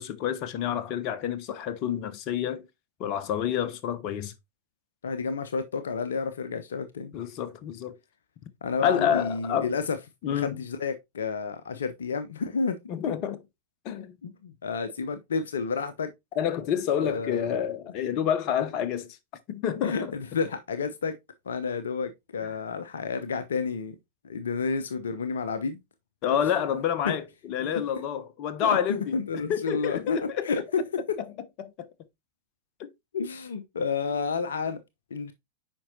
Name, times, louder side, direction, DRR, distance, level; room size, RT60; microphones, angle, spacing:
voice 1, 0.0-2.7 3.0-4.3 7.1-8.0 8.8-9.7 10.2-10.6 12.9-13.4 13.8-14.1 16.4-19.2 19.5-20.1 26.2-30.6 31.6-31.9 32.8-32.9, left 9 dB, 40° left, 0.9 m, -28 dB
voice 2, 5.0-7.1 8.6-10.0 10.3-12.8 14.2-16.1 17.0-17.6 19.8-21.1 21.5-24.0 24.2-25.8 27.0-27.1 27.6-27.8 28.6-28.8 29.1-30.8 33.1-34.8 35.1-35.3, left 5 dB, 65° left, 0.6 m, -30 dB
8.6 x 5.3 x 2.8 m
figure-of-eight pair, 90°, 0 cm